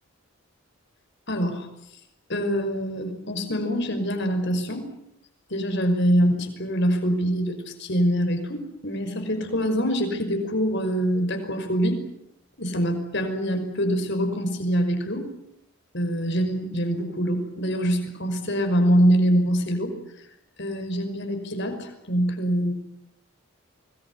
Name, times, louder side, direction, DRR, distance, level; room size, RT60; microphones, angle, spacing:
voice 1, 1.3-1.7 2.3-4.9 5.5-12.0 12.6-15.3 15.9-19.9 20.6-22.7, equal, 50° left, 6 dB, 5.6 m, -24 dB
25.0 x 20.5 x 9.7 m, 0.74 s
head